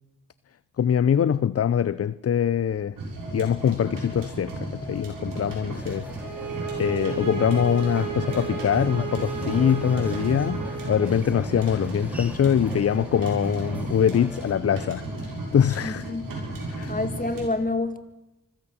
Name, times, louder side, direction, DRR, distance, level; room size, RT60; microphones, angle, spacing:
voice 1, 0.8-3.0 3.3-6.1 6.8-15.0 15.5-16.1 16.7-16.9, left 8 dB, 45° left, 0.6 m, -23 dB
sound 1, 3.0-17.5, right 1 dB, 85° right, 7.1 m, -34 dB
sound 2, 5.7-14.5, equal, 5° right, 4.0 m, -43 dB
sound 3, 6.2-11.1, right 7 dB, 65° right, 6.3 m, -34 dB
voice 2, 15.8-16.3 16.9-18.0, left 2 dB, 25° left, 2.4 m, -28 dB
25.0 x 15.5 x 7.2 m
cardioid pair, 55°, 33 cm